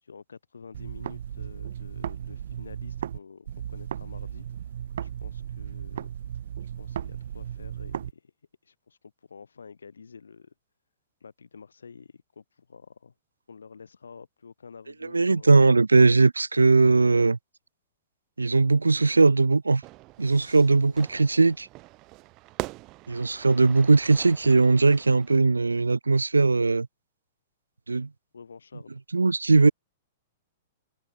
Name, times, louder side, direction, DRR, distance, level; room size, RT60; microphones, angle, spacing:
voice 1, 0.0-4.5 5.0-6.1 6.7-8.3 8.6-10.5 11.2-13.1 13.5-15.6 17.0-17.3 28.3-28.9, left 5 dB, 70° left, 4.5 m, -48 dB
sound 1, 0.7-3.2 3.5-8.1, right 9 dB, 60° right, 1.1 m, -36 dB
voice 2, 15.1-17.4 18.4-19.8 20.2-21.7 23.1-26.9 27.9-28.1 29.1-29.7, right 3 dB, 80° right, 0.4 m, -19 dB
Fire / Fireworks, 19.8-25.4, right 21 dB, 35° right, 0.7 m, -42 dB
open air
figure-of-eight pair, 105°, 0 cm